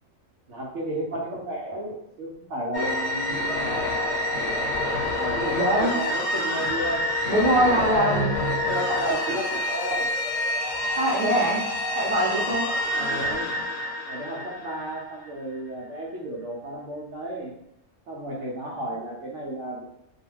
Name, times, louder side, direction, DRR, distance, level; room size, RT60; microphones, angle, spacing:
voice 1, 0.5-4.1 5.2-7.1 7.6-10.1 12.8-13.6 14.1-17.5 18.1-19.8, right 1 dB, 70° right, -3 dB, 0.9 m, -32 dB
sound 1, 2.7-15.2, left 1 dB, 65° left, 0.8 m, -27 dB
voice 2, 5.5-6.0 7.3-8.3 8.6-8.7 11.0-12.7, equal, 40° right, -4 dB, 0.7 m, -23 dB
2.3 x 2.3 x 3.1 m, 0.76 s
omnidirectional pair, 1.4 m